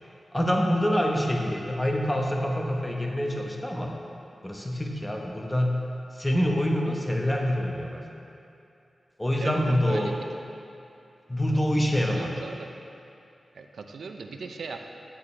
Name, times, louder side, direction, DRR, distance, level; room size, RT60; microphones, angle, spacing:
voice 1, 0.3-3.9 4.4-5.8 6.2-8.0 9.2-10.1 11.3-12.3, equal, 10° left, 0 dB, 1.0 m, -26 dB
voice 2, 9.4-10.3 11.9-12.7 13.5-14.8, right 4 dB, 80° right, 4 dB, 0.5 m, -38 dB
9.0 x 8.3 x 3.2 m, 2.7 s
wide cardioid pair, 80°, 0 cm